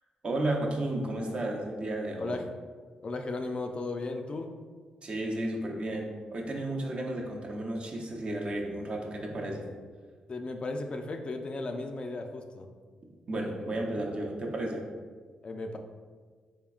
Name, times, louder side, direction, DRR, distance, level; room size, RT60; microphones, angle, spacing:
voice 1, 0.2-2.4 5.0-9.6 13.3-14.8, right 1 dB, 45° right, 0 dB, 0.6 m, -33 dB
voice 2, 3.0-4.5 10.3-12.7 15.4-15.8, left 2 dB, 40° left, 5 dB, 0.3 m, -35 dB
3.6 x 3.4 x 2.3 m, 1.6 s
cardioid pair, 70°, 3 cm